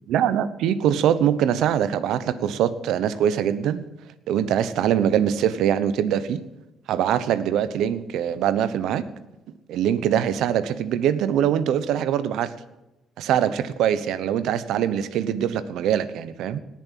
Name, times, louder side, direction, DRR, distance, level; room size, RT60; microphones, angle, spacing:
voice 1, 0.1-3.8 4.3-6.4 6.9-9.1 9.7-12.5 13.2-16.6, right 9 dB, 85° right, 15 dB, 0.9 m, -23 dB
18.5 x 7.4 x 7.5 m, 0.98 s
cardioid pair, 90°, 0 cm